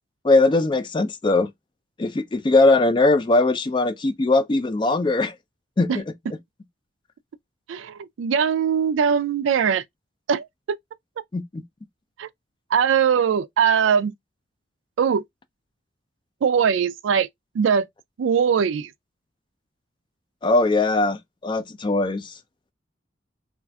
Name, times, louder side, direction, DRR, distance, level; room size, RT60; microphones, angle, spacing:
voice 1, 0.2-1.5 2.0-5.3 5.8-6.0 11.3-11.6 20.4-22.3, left 2 dB, 25° left, 0.3 m, -20 dB
voice 2, 7.7-9.8 10.3-10.8 12.2-12.3 12.7-14.1 15.0-15.2 16.4-17.3 17.5-17.9 18.2-18.9, right 7 dB, 85° right, 0.3 m, -21 dB
2.4 x 2.4 x 3.3 m
head